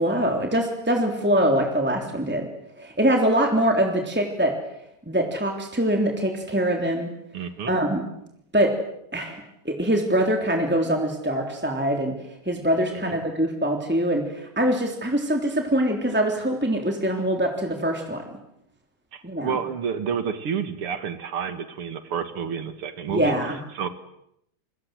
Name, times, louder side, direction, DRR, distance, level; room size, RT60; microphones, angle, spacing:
voice 1, 0.0-2.5 2.8-4.5 5.1-7.1 7.7-8.0 8.5-8.7 9.1-18.3 19.2-19.6 23.1-23.6, right 1 dB, 5° right, 3 dB, 3.3 m, -23 dB
voice 2, 7.3-7.7 13.1-13.2 19.1-23.3 23.7-23.9, right 7 dB, 80° right, 10 dB, 2.7 m, -29 dB
27.5 x 24.5 x 7.8 m, 0.76 s
omnidirectional pair, 2.4 m